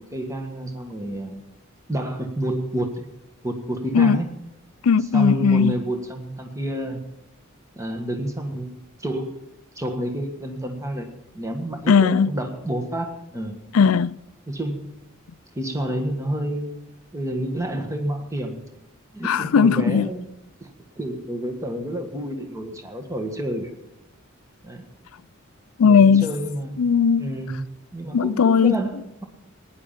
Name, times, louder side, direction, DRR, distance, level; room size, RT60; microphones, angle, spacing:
voice 1, 0.0-1.4 1.9-3.1 3.4-4.3 5.0-7.0 7.7-9.4 9.7-11.1 11.3-13.6 14.5-15.0 15.5-16.9 17.1-18.6 19.1-20.3 20.6-20.7 21.0-23.7 24.6-24.8 25.8-26.9 27.2-27.6 27.9-29.2, right 1 dB, 15° right, 1.5 m, -29 dB
voice 2, 4.8-5.8 11.9-12.3 13.7-14.2 19.2-20.1 25.8-26.3 26.8-27.3 28.1-28.8, left 6 dB, 85° left, 0.4 m, -17 dB
17.5 x 10.5 x 5.7 m
head